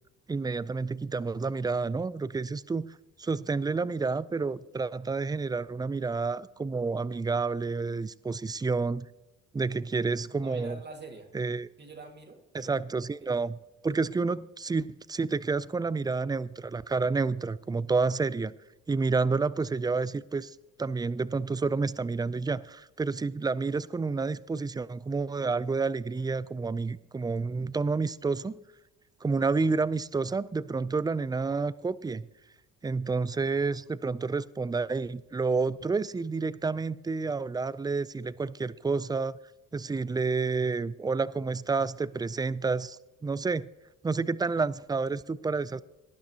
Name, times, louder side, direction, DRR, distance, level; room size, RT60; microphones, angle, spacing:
voice 1, 0.3-2.9 3.2-9.1 9.5-10.8 11.3-11.7 12.5-13.6 13.8-18.5 18.9-28.6 29.2-32.3 32.8-39.4 39.7-43.7 44.0-45.8, right 4 dB, 15° right, 18 dB, 0.3 m, -29 dB
voice 2, 10.4-11.3 11.8-12.9 13.2-13.4, right 3 dB, 35° right, 3 dB, 2.0 m, -45 dB
18.0 x 11.0 x 2.9 m, 1.0 s
cardioid pair, 90°, 30 cm